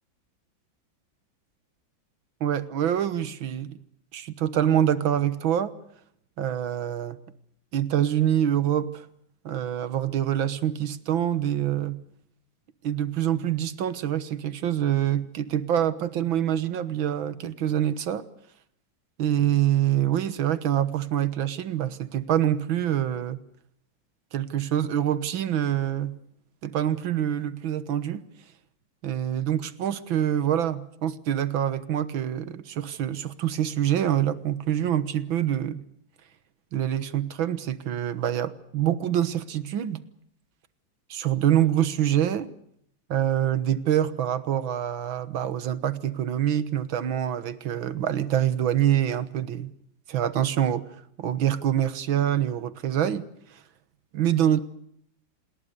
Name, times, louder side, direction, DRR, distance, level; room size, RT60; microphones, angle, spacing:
voice 1, 2.4-3.8 4.1-5.7 6.4-7.2 7.7-9.1 9.5-12.0 12.8-18.2 19.2-23.4 24.3-26.2 26.6-28.2 29.0-35.8 36.7-40.0 41.1-42.5 43.1-49.7 50.1-50.9 51.2-53.2 53.5-53.6 54.1-54.6, right 10 dB, 85° right, 2.0 m, -25 dB
27.0 x 20.5 x 6.8 m
omnidirectional pair, 2.1 m